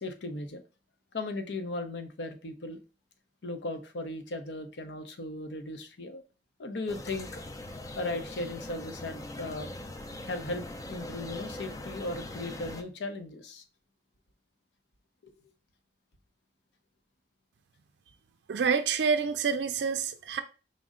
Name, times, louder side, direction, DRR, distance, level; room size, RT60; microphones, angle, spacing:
voice 1, 0.0-0.6 1.1-2.8 3.4-6.2 6.6-7.4 7.9-9.7 10.2-13.6, left 2 dB, 80° left, 0.6 m, -37 dB
sound 1, 6.9-12.8, left 1 dB, 20° left, 0.4 m, -41 dB
voice 2, 18.5-20.4, right 6 dB, 75° right, 0.4 m, -27 dB
5.1 x 2.0 x 3.6 m
head